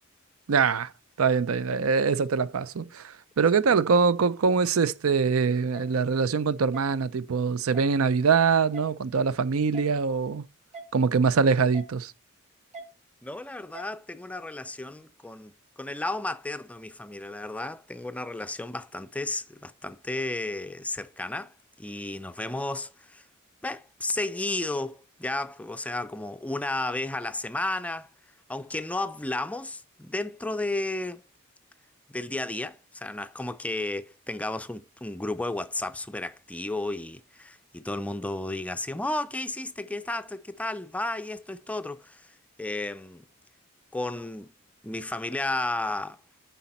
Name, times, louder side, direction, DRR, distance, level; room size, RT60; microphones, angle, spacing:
voice 1, 0.5-0.9 1.2-10.4 10.9-12.1, right 5 dB, 75° right, 0.5 m, -23 dB
sound 1, 5.7-5.9 6.7-6.9 7.7-7.9 8.7-8.9 9.7-9.9 10.7-10.9 11.7-11.9 12.7-12.9 13.7-13.9, right 2 dB, 35° right, 2.1 m, -42 dB
voice 2, 13.2-23.2 23.6-28.1 28.5-31.2 32.1-43.2 43.9-44.5 44.8-46.2, left 2 dB, 5° left, 0.4 m, -33 dB
9.9 x 4.1 x 4.2 m
head